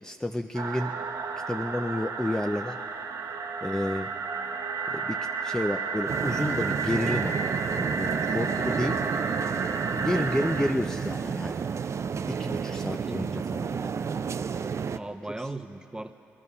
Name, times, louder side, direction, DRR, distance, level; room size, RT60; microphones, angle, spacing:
voice 1, 0.0-0.9 1.5-2.8 3.6-4.1 4.9-9.0 9.9-11.6 12.3-13.8, left 1 dB, 10° left, 5 dB, 0.5 m, -31 dB
sound 1, 0.5-10.7, right 5 dB, 65° right, 0.9 m, -32 dB
sound 2, 6.1-15.0, right 6 dB, 45° right, 0.5 m, -31 dB
voice 2, 12.9-13.3 14.9-16.1, right 2 dB, 10° right, 9 dB, 0.9 m, -38 dB
20.0 x 12.5 x 5.6 m, 2.8 s
hypercardioid pair, 45°, 6 cm